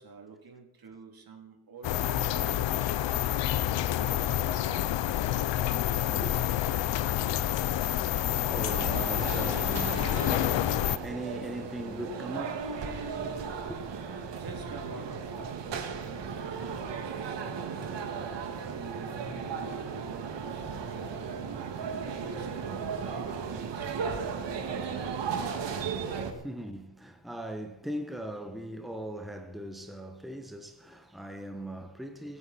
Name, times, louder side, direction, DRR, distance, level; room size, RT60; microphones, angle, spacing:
voice 1, 0.0-5.0 14.2-17.4 18.1-21.5 22.2-24.4, right 4 dB, 55° right, 3.2 m, -48 dB
sound 1, 1.8-11.0, left 13 dB, 80° left, 0.9 m, -28 dB
voice 2, 5.9-6.3 8.5-13.8 26.2-32.4, right 1 dB, ahead, 1.6 m, -40 dB
sound 2, 8.6-26.3, right 6 dB, 75° right, 2.4 m, -36 dB
25.0 x 9.7 x 4.4 m
cardioid pair, 85°, 43 cm